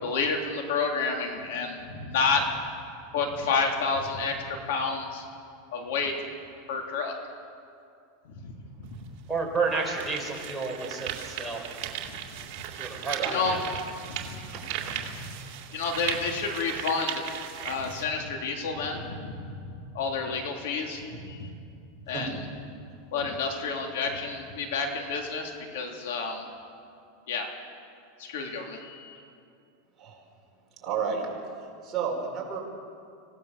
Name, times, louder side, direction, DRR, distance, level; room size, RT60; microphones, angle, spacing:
voice 1, 0.0-2.4 3.1-5.2 5.7-6.1 6.7-7.2 8.4-8.5 13.3-13.6 14.1-14.4 15.7-17.2 17.6-21.5 22.1-22.3 23.1-26.4 27.3-27.5 28.2-29.2, left 4 dB, 75° left, 2 dB, 3.4 m, -30 dB
sound 1, 8.8-8.9 9.5-18.0, right 10 dB, 50° right, 2.7 m, -37 dB
voice 2, 9.3-11.1 11.4-11.6 12.8-13.6, right 4 dB, ahead, -3 dB, 4.3 m, -30 dB
voice 3, 30.8-31.3 31.8-32.6, right 6 dB, 25° right, -2 dB, 4.8 m, -31 dB
26.0 x 17.5 x 6.9 m, 2.4 s
supercardioid pair, 150°, 0 cm